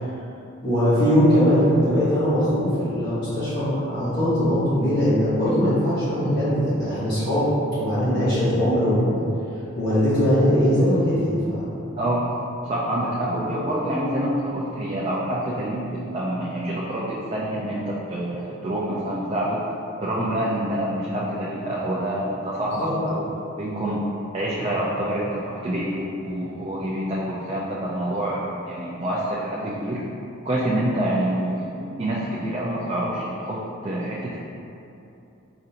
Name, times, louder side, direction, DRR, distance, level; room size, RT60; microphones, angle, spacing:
voice 1, 0.6-9.2 9.7-11.7 13.3-13.4 22.8-22.9, equal, 55° left, -13 dB, 1.1 m, -21 dB
voice 2, 12.0-12.3 12.6-19.6 20.0-23.3 23.6-24.0 24.3-30.0 30.4-31.7 32.0-34.4, right 1 dB, 25° right, -6 dB, 0.3 m, -27 dB
4.9 x 2.5 x 2.8 m, 2.8 s
head